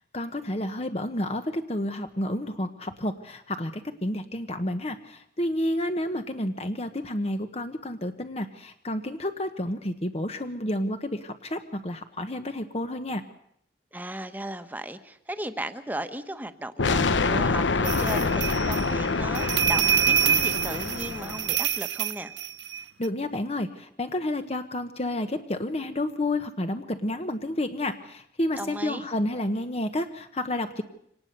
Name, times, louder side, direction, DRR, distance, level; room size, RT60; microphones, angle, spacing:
voice 1, 0.1-13.2 23.0-30.8, left 1 dB, 35° left, 8 dB, 1.1 m, -30 dB
voice 2, 13.9-22.3 28.6-29.1, right 1 dB, 10° right, 10 dB, 1.2 m, -36 dB
sound 1, 16.8-21.7, left 4 dB, 90° left, 0.9 m, -26 dB
sound 2, 17.8-23.1, right 9 dB, 75° right, 0.8 m, -26 dB
25.5 x 19.0 x 6.8 m, 0.74 s
head